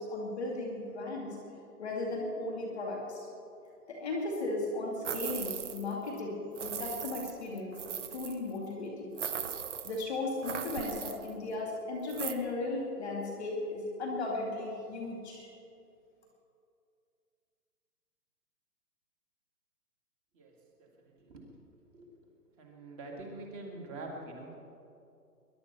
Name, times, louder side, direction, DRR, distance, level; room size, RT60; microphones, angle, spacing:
voice 1, 0.0-1.4 1.8-3.2 3.9-9.1 9.8-15.5, left 2 dB, ahead, -22 dB, 0.6 m, -36 dB
sound 1, 5.0-5.9 6.2-6.3 6.5-8.4 9.2-10.0 10.4-11.3 12.1-12.3, right 7 dB, 50° right, 0.9 m, -38 dB
voice 2, 22.6-24.5, right 2 dB, 20° right, 1 dB, 2.1 m, -44 dB
21.0 x 11.0 x 5.7 m, 2.6 s
hypercardioid pair, 165°, 47 cm